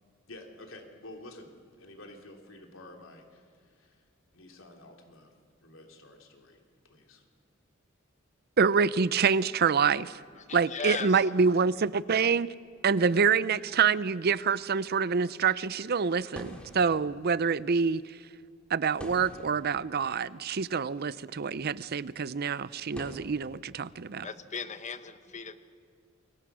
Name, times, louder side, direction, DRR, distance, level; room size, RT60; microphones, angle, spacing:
voice 1, 0.3-4.0 4.3-5.3 5.6-7.2, left 1 dB, 85° left, 3.2 m, -50 dB
voice 2, 8.6-10.2 10.5-12.5 12.8-18.0 18.7-24.3, right 5 dB, 50° right, 0.6 m, -26 dB
voice 3, 10.4-11.2 24.2-25.6, left 5 dB, 35° left, 1.1 m, -37 dB
sound 1, 10.4-23.1, equal, 5° left, 3.1 m, -52 dB
28.5 x 23.5 x 6.3 m
head